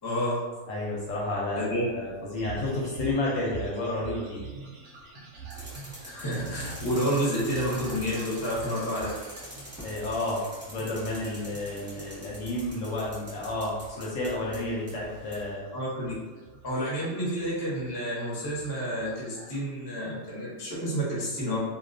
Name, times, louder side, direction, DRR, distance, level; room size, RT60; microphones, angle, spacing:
voice 1, 0.0-0.4 1.5-1.9 6.0-9.1 15.7-16.1 16.6-21.6, equal, 25° left, -7 dB, 0.5 m, -30 dB
voice 2, 0.7-4.4 9.8-15.7, left 2 dB, 70° left, -4 dB, 0.9 m, -31 dB
sound 1, 2.4-19.6, right 5 dB, 70° right, 0.8 m, -46 dB
sound 2, 5.5-15.5, equal, 15° right, 0.7 m, -45 dB
2.3 x 2.2 x 2.5 m, 1.2 s
omnidirectional pair, 1.5 m